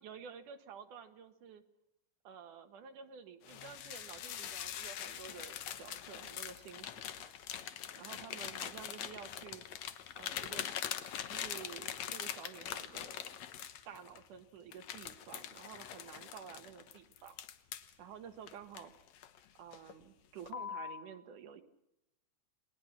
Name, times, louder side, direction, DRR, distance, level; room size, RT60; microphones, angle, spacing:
voice 1, 0.0-1.6 2.2-7.3 8.0-9.7 10.1-10.7 11.3-13.4 13.9-17.4 18.0-18.9 19.6-21.6, right 7 dB, 75° right, 7 dB, 3.0 m, -51 dB
sound 1, 3.4-14.2 14.7-17.9 18.5-19.4 19.7-20.0 20.5-21.0, left 10 dB, 65° left, 2.2 m, -43 dB
29.5 x 20.5 x 6.0 m, 0.86 s
omnidirectional pair, 3.7 m